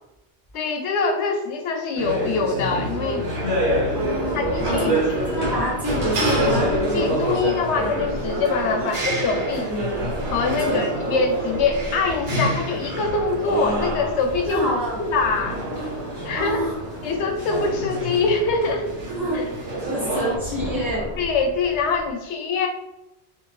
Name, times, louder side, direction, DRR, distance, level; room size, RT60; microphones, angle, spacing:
voice 1, 0.5-3.3 4.3-5.0 6.9-9.7 10.3-14.6 15.0-15.6 16.2-16.6 17.0-18.9 19.3-19.4 21.2-22.7, left 4 dB, 85° left, 4 dB, 0.9 m, -24 dB
sound 1, 2.0-20.4, right 1 dB, 80° right, 1.2 m, -27 dB
sound 2, 3.6-22.1, equal, 30° left, 0.6 m, -36 dB
voice 2, 3.9-4.4 4.7-5.0 5.3-6.8 8.7-8.9 10.5-10.8 14.5-15.0 16.4-16.7 19.1-19.4 19.9-21.1, equal, ahead, -7 dB, 1.2 m, -27 dB
2.6 x 2.4 x 3.1 m, 0.93 s
omnidirectional pair, 1.1 m